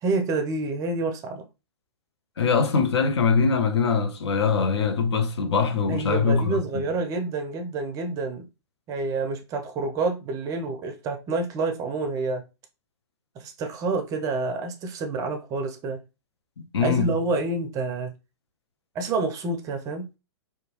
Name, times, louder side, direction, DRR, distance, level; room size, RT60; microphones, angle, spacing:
voice 1, 0.0-1.5 2.7-2.9 5.9-8.5 8.9-12.4 13.4-16.0 16.8-18.1 18.9-20.1, right 3 dB, 25° right, 0.5 m, -28 dB
voice 2, 2.4-6.8 16.6-17.1, left 5 dB, 70° left, 0.6 m, -23 dB
2.7 x 2.2 x 2.9 m
figure-of-eight pair, 115°, 15 cm